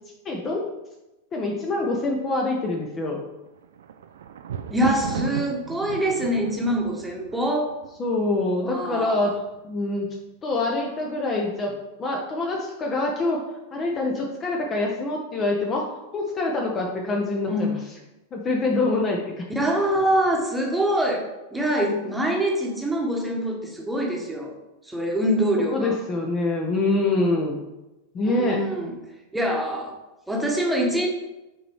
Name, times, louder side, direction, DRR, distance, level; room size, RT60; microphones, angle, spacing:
voice 1, 0.2-0.6 1.3-3.2 8.0-9.4 9.6-10.1 10.4-11.7 12.0-13.4 13.7-17.7 18.3-19.2 25.7-27.6 28.1-28.7, left 2 dB, 25° left, 0 dB, 0.8 m, -25 dB
Thunder, 3.5-8.6 9.3-9.8 10.1-10.2, right 8 dB, 60° right, 0.4 m, -35 dB
voice 2, 4.7-7.7 8.6-9.3 17.5-17.7 19.5-21.2 21.5-24.5 24.8-26.0 28.3-28.9 29.3-29.9 30.3-31.1, equal, 5° right, -1 dB, 1.3 m, -24 dB
5.9 x 4.1 x 4.6 m, 1.0 s
figure-of-eight pair, 90°, 0 cm